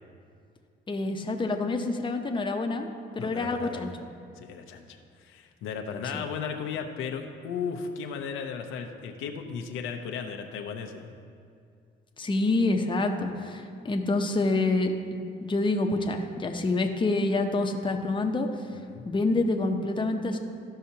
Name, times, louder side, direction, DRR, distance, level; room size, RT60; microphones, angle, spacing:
voice 1, 0.9-2.9 3.1-3.9 6.1-6.2 12.2-18.5 19.0-20.4, left 2 dB, 25° left, 4 dB, 0.7 m, -27 dB
voice 2, 3.2-3.9 4.4-11.1 18.7-19.0, left 6 dB, 90° left, 4 dB, 0.7 m, -35 dB
13.5 x 5.7 x 2.8 m, 2.4 s
cardioid pair, 90°, 20 cm